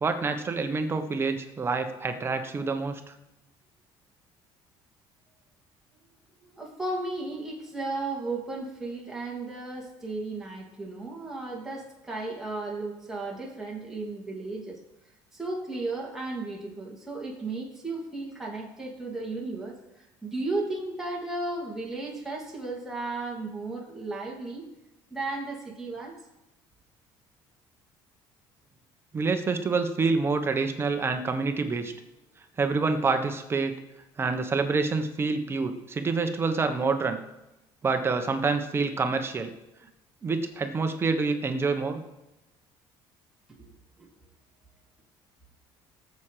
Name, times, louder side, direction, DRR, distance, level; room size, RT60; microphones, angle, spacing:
voice 1, 0.0-3.0 29.1-31.9 32.6-33.8 34.2-37.2 37.8-39.5 40.2-42.0, right 4 dB, 25° right, 7 dB, 1.1 m, -27 dB
voice 2, 6.4-14.8 15.3-24.6 25.1-26.1 43.6-43.7 44.0-44.1, right 2 dB, 5° right, -3 dB, 2.9 m, -34 dB
18.5 x 7.5 x 5.0 m, 0.95 s
cardioid pair, 135°, 10 cm